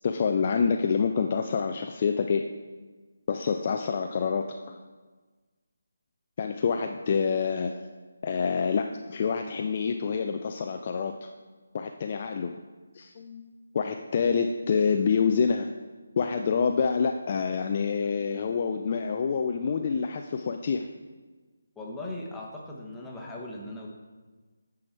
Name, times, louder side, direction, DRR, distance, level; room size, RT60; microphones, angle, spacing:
voice 1, 0.0-2.4 3.3-4.8 6.4-7.9 8.2-11.3 11.7-12.5 12.9-15.7 16.2-20.9, left 5 dB, 35° left, 5 dB, 0.4 m, -27 dB
voice 2, 21.8-23.9, left 1 dB, 5° left, -3 dB, 1.0 m, -38 dB
9.7 x 4.8 x 4.5 m, 1.3 s
figure-of-eight pair, 150°, 0 cm